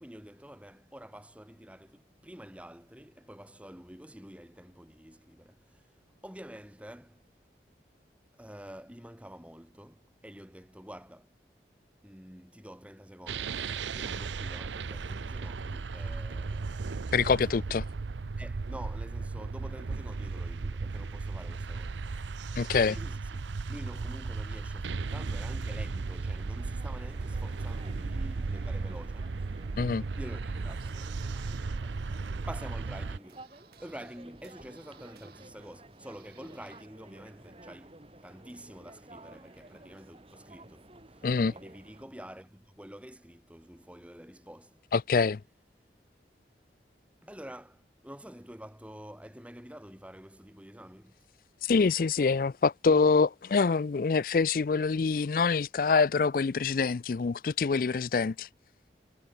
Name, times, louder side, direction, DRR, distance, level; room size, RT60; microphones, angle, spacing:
voice 1, 0.0-6.0 6.2-7.2 8.4-11.4 12.0-16.9 18.4-22.0 22.9-23.4 23.7-29.6 30.1-31.0 32.5-33.5 33.8-44.8 47.2-51.3, equal, 5° right, 2.1 m, -48 dB
sound 1, 13.3-33.2, right 4 dB, 90° right, 0.6 m, -35 dB
voice 2, 17.1-17.8 22.6-23.0 29.8-30.0 41.2-41.5 44.9-45.4 51.6-58.5, left 4 dB, 50° left, 0.4 m, -25 dB
sound 2, 26.0-42.1, right 2 dB, 30° right, 2.0 m, -53 dB
sound 3, 30.7-36.9, right 8 dB, 60° right, 3.6 m, -62 dB
head